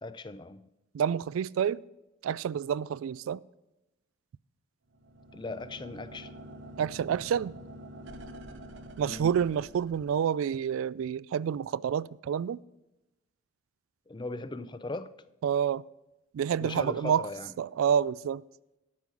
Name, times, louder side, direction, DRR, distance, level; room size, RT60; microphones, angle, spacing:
voice 1, 0.0-0.7 5.3-6.3 9.0-9.3 14.1-15.1 16.6-17.5, left 2 dB, 20° left, 0.4 m, -38 dB
voice 2, 0.9-1.8 2.2-3.4 6.8-7.5 9.0-12.6 15.4-15.8 16.3-17.3 17.6-18.4, right 8 dB, 80° right, 0.3 m, -28 dB
sound 1, 4.9-10.5, right 1 dB, 60° right, 1.0 m, -47 dB
13.0 x 5.5 x 7.6 m
head